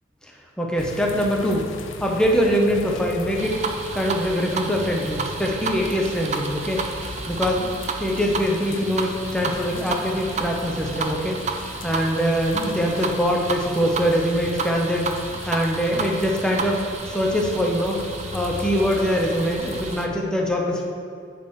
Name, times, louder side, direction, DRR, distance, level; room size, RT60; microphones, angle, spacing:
voice 1, 0.6-1.7 2.0-3.6 3.9-7.7 8.0-15.0 15.5-16.8 17.1-18.0 18.3-20.8, equal, 5° left, -1 dB, 0.6 m, -23 dB
sound 1, 0.8-20.1, left 3 dB, 85° left, 0.5 m, -38 dB
sound 2, 3.4-20.1, right 5 dB, 35° right, 0.4 m, -32 dB
9.6 x 3.4 x 4.7 m, 2.6 s
head